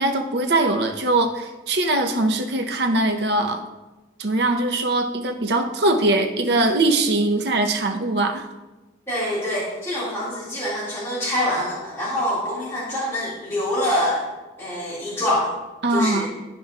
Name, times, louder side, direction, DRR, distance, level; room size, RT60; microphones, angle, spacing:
voice 1, 0.0-3.6 4.2-8.5 15.8-16.3, right 2 dB, 65° right, 4 dB, 0.7 m, -21 dB
voice 2, 9.1-14.2 14.6-15.5 15.9-16.3, left 1 dB, 15° left, -10 dB, 2.0 m, -25 dB
12.0 x 5.1 x 2.3 m, 1.1 s
head